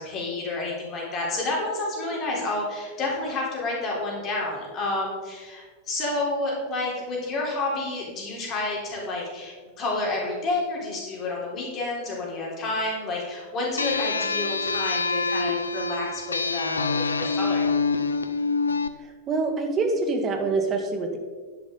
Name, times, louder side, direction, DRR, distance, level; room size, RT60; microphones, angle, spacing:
voice 1, 0.0-17.7, left 2 dB, 30° left, -3 dB, 3.6 m, -30 dB
sound 1, 13.8-18.9, left 4 dB, 75° left, 0.5 m, -26 dB
voice 2, 19.3-21.2, right 3 dB, 25° right, 4 dB, 1.8 m, -25 dB
10.5 x 10.5 x 3.9 m, 1.5 s
figure-of-eight pair, 90°, 0 cm